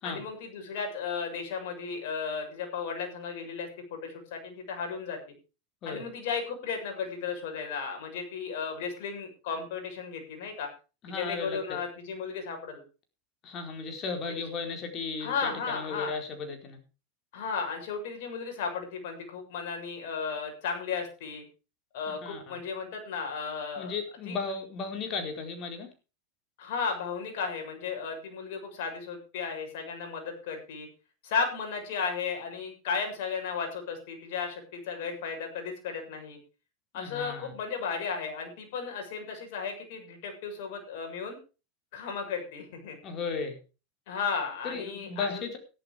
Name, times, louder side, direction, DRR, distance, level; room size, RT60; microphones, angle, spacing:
voice 1, 0.0-5.2 5.9-10.7 11.1-12.8 15.2-16.1 17.3-21.4 21.9-24.0 24.3-24.4 26.6-30.9 31.2-36.4 36.9-41.4 41.9-43.0 44.1-45.4, left 5 dB, 70° left, 3 dB, 7.0 m, -34 dB
voice 2, 11.0-11.8 13.4-16.8 22.2-22.6 23.8-25.9 36.9-37.5 43.0-43.6 44.6-45.6, left 4 dB, 40° left, 5 dB, 4.5 m, -35 dB
13.5 x 11.5 x 5.1 m, 0.33 s
supercardioid pair, 120°, 0 cm